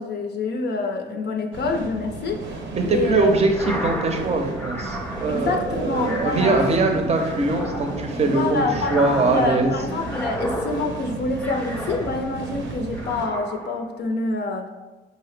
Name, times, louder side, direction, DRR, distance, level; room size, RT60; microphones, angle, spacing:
voice 1, 0.0-2.6 2.9-3.3 5.3-6.6 6.9-7.1 8.2-14.7, left 3 dB, 60° left, 4 dB, 0.5 m, -27 dB
sound 1, 1.5-13.3, right 3 dB, 75° right, 0.7 m, -33 dB
voice 2, 2.7-9.7, right 3 dB, 30° right, 4 dB, 0.6 m, -22 dB
sound 2, 3.4-12.5 12.9-14.0, equal, 10° left, 0.5 m, -34 dB
4.9 x 2.7 x 3.2 m, 1.2 s
cardioid pair, 90°, 20 cm